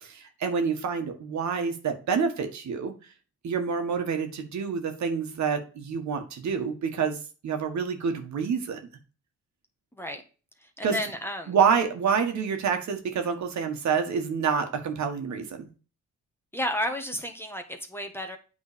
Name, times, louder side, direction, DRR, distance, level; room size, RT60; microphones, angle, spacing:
voice 1, 0.0-2.9 3.4-7.2 7.4-8.8 10.8-10.9 11.5-15.7, right 6 dB, 65° right, 5 dB, 1.8 m, -27 dB
voice 2, 9.9-10.2 10.6-11.6 16.5-18.4, left 1 dB, 10° left, 5 dB, 1.3 m, -32 dB
8.6 x 3.9 x 5.2 m, 0.35 s
cardioid pair, 90°, 30 cm